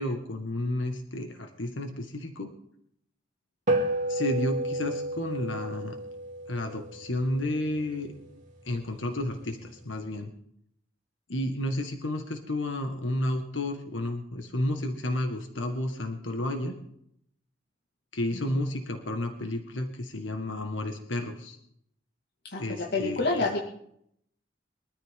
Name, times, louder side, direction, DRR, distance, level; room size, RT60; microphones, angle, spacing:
voice 1, 0.0-2.5 4.1-6.0 6.5-8.1 8.7-10.3 11.3-16.8 18.1-21.6 22.6-23.2, left 1 dB, 80° left, 4 dB, 1.7 m, -31 dB
sound 1, 3.7-8.3, right 1 dB, 45° right, 2.9 m, -32 dB
voice 2, 22.4-23.6, left 3 dB, 60° left, 0 dB, 2.2 m, -29 dB
23.0 x 13.5 x 3.8 m, 0.69 s
head